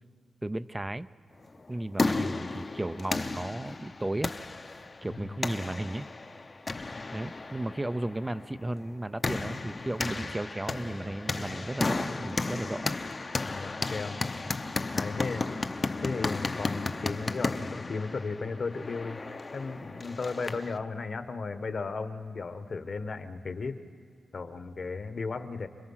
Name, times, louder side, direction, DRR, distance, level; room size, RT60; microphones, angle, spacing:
voice 1, 0.4-1.1 1.7-4.3 5.0-6.1 7.1-12.9, right 1 dB, 15° right, 12 dB, 0.5 m, -34 dB
sound 1, 1.5-20.8, left 3 dB, 35° left, 0.8 m, -34 dB
voice 2, 5.0-5.5 13.4-14.2 14.9-15.6 16.0-19.2 19.5-23.8 24.3-25.7, left 4 dB, 55° left, 9 dB, 1.4 m, -35 dB
29.5 x 22.0 x 5.7 m, 2.1 s
cardioid pair, 85°, 0 cm